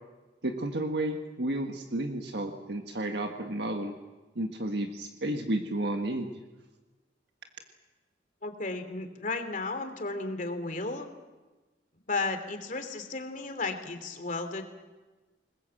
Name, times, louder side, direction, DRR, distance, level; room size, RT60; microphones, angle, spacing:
voice 1, 0.4-3.9 4.3-6.3, right 1 dB, 65° right, 4 dB, 1.6 m, -32 dB
voice 2, 8.4-11.1 12.1-14.7, left 3 dB, 45° left, 7 dB, 2.8 m, -34 dB
26.5 x 20.5 x 7.8 m, 1.2 s
head